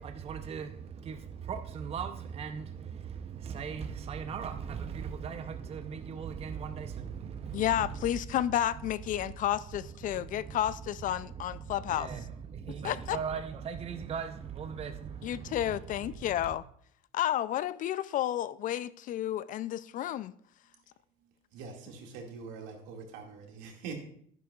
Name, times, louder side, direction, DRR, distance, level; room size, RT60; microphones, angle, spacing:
voice 1, 0.0-16.6, right 7 dB, 30° right, 0.7 m, -39 dB
voice 2, 7.5-12.1 12.8-13.2 15.2-16.6 17.1-20.3, left 12 dB, 45° left, 0.4 m, -31 dB
voice 3, 21.2-23.9, right 5 dB, 75° right, 2.1 m, -44 dB
11.0 x 10.0 x 2.4 m
supercardioid pair, 100°, 20 cm